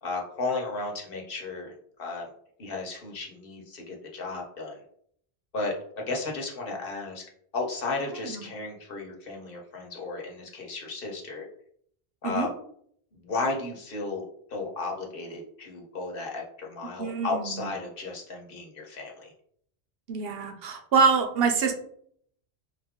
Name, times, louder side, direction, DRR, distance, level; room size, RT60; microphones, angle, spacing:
voice 1, 0.0-2.3 2.6-4.8 5.5-7.2 7.5-11.5 12.2-12.5 13.1-14.2 14.5-19.3, left 3 dB, 60° left, 0 dB, 1.1 m, -34 dB
voice 2, 17.0-17.7 20.1-21.7, right 5 dB, 70° right, 5 dB, 0.8 m, -25 dB
4.0 x 2.5 x 3.6 m, 0.66 s
omnidirectional pair, 1.1 m